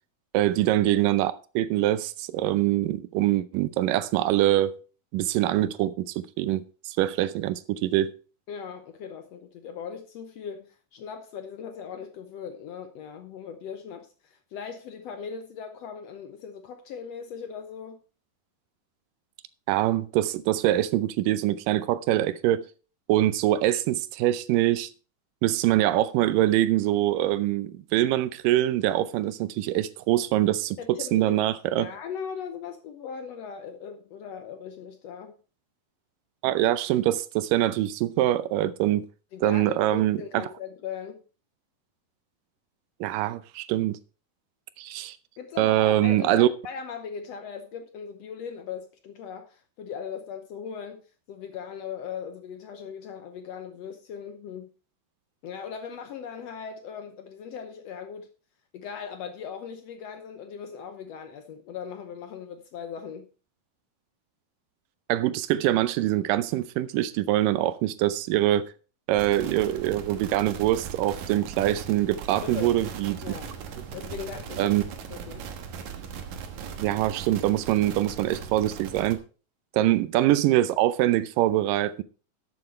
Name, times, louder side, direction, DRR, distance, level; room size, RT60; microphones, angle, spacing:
voice 1, 0.3-4.8 5.1-8.1 19.7-22.7 23.1-24.9 25.4-31.9 36.4-39.1 39.4-40.2 43.0-44.0 44.8-45.2 45.6-46.5 65.1-68.7 69.1-73.2 74.6-74.8 76.8-79.2 79.7-82.0, right 14 dB, 85° right, 2.3 m, -24 dB
voice 2, 8.5-18.0 30.8-31.4 31.8-35.3 39.3-41.2 45.4-51.0 51.3-54.7 55.4-58.3 58.7-63.3 72.4-72.7 73.2-73.6 73.9-74.8 75.1-75.5, left 7 dB, 70° left, 1.6 m, -39 dB
sound 1, 69.1-79.1, right 7 dB, 65° right, 2.5 m, -39 dB
12.5 x 7.8 x 4.3 m
omnidirectional pair, 3.8 m